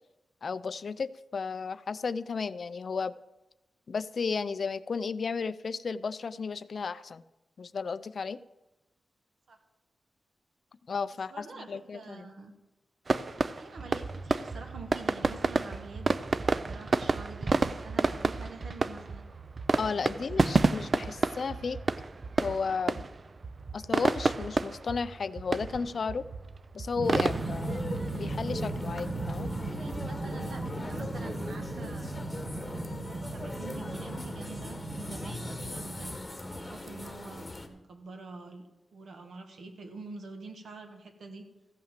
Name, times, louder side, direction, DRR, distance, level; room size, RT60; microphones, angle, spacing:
voice 1, 0.4-3.1 3.9-7.2 7.6-8.4 10.9-12.2 19.8-21.8 22.4-23.0 23.7-26.3 26.7-29.5, left 5 dB, 50° left, 16 dB, 0.4 m, -34 dB
voice 2, 11.3-12.5 13.6-19.3 19.9-20.5 29.3-32.1 32.9-36.1 36.5-38.6 38.9-41.4, right 3 dB, 70° right, 5 dB, 1.7 m, -46 dB
sound 1, 13.1-30.7, right 3 dB, 35° right, 0.4 m, -31 dB
sound 2, 27.0-37.7, left 2 dB, 20° left, 1.2 m, -40 dB
sound 3, 27.0-36.2, right 2 dB, 55° right, 1.5 m, -37 dB
14.5 x 5.8 x 7.4 m, 1.0 s
wide cardioid pair, 150°, 0 cm